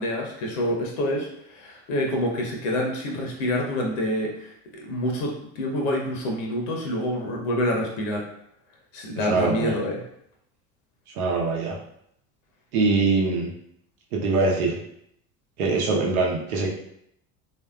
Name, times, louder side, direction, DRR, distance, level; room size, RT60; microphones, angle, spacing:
voice 1, 0.0-8.3 8.9-10.0, left 1 dB, 55° left, 0 dB, 0.8 m, -27 dB
voice 2, 9.2-9.8 11.2-11.8 12.7-13.5 14.1-14.8 15.6-16.7, right 3 dB, 70° right, -1 dB, 0.9 m, -23 dB
3.3 x 2.7 x 2.3 m, 0.73 s
figure-of-eight pair, 70°, 46 cm